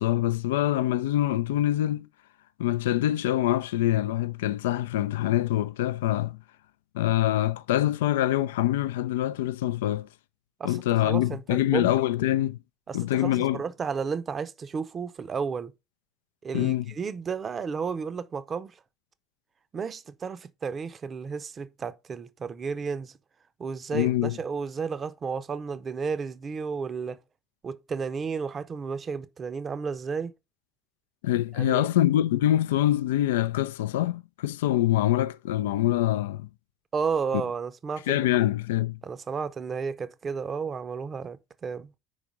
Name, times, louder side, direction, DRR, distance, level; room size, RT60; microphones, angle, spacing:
voice 1, 0.0-2.1 2.6-6.4 6.9-10.1 10.6-12.6 12.9-13.6 16.5-16.9 23.9-24.4 31.2-36.5 38.1-39.0, left 13 dB, 70° left, 0.3 m, -25 dB
voice 2, 10.6-11.9 12.9-15.7 16.4-18.7 19.7-23.1 23.6-27.2 27.6-30.3 31.5-31.9 36.9-38.4 39.0-41.9, right 5 dB, 30° right, 0.6 m, -32 dB
5.0 x 5.0 x 5.3 m
figure-of-eight pair, 60°, 0 cm